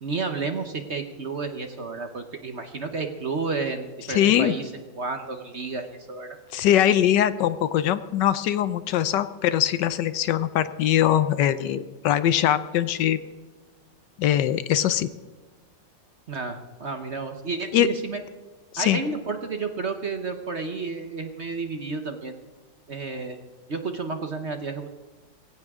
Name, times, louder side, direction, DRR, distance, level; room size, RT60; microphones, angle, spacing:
voice 1, 0.0-4.7 5.0-6.4 16.3-18.2 18.8-22.4 22.9-23.4 23.7-24.9, right 4 dB, 45° right, 6 dB, 1.0 m, -31 dB
voice 2, 4.1-4.5 6.5-13.2 14.2-15.1 17.7-17.9 18.7-19.0, left 11 dB, 75° left, 14 dB, 1.2 m, -22 dB
21.0 x 16.5 x 3.7 m, 1.3 s
omnidirectional pair, 2.0 m